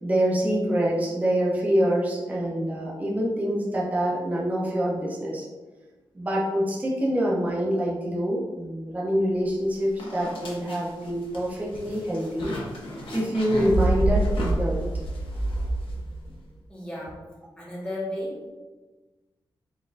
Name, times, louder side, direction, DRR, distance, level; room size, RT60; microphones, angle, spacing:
voice 1, 0.0-5.5 6.1-12.5 13.1-14.9, equal, 15° right, -4 dB, 0.6 m, -25 dB
sound 1, 9.5-9.6 10.0-16.4, right 1 dB, 85° left, 0.9 m, -28 dB
voice 2, 16.7-17.2 17.6-18.5, left 1 dB, 10° left, -6 dB, 1.2 m, -34 dB
4.0 x 3.7 x 2.5 m, 1.2 s
wide cardioid pair, 150°, 9 cm